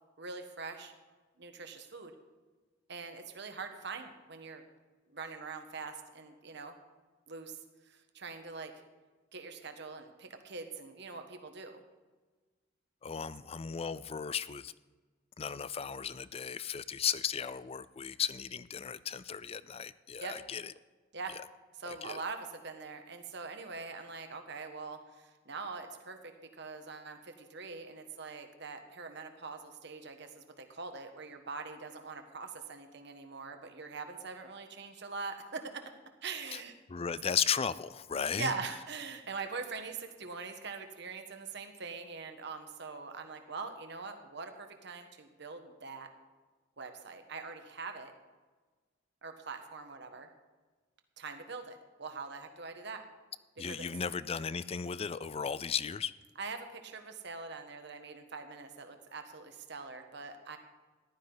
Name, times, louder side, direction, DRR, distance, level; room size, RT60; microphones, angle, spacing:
voice 1, 0.2-0.9 1.4-2.1 2.9-4.6 5.1-6.8 7.3-7.6 7.8-8.7 9.3-11.8 20.2-20.4 21.1-21.4 21.7-35.8 36.2-36.7 38.4-46.1 46.8-48.1 49.2-50.3 51.2-53.0 53.7-53.9 56.4-60.6, right 4 dB, 60° right, 6 dB, 1.4 m, -43 dB
voice 2, 13.0-14.7 15.4-20.7 21.9-22.2 36.9-38.5 53.6-56.1, left 7 dB, 30° left, 17 dB, 0.4 m, -35 dB
15.0 x 12.0 x 4.0 m, 1.3 s
head